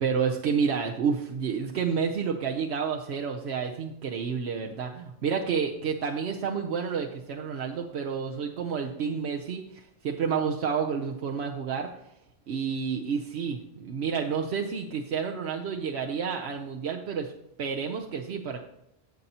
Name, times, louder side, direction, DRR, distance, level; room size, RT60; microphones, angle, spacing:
voice 1, 0.0-11.9 12.5-17.3 17.6-18.6, right 6 dB, 80° right, 2 dB, 1.0 m, -30 dB
16.0 x 5.4 x 2.8 m, 0.83 s
omnidirectional pair, 1.1 m